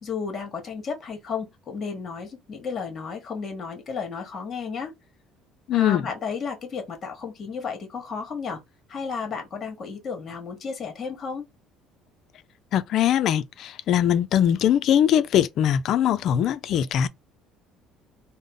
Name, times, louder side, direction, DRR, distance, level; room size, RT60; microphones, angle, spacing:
voice 1, 0.0-4.9 5.7-8.6 8.9-11.5, left 5 dB, 35° left, 1.2 m, -33 dB
voice 2, 5.7-6.1 12.7-17.1, left 10 dB, 50° left, 0.4 m, -21 dB
3.6 x 2.0 x 3.6 m
cardioid pair, 150°, 0 cm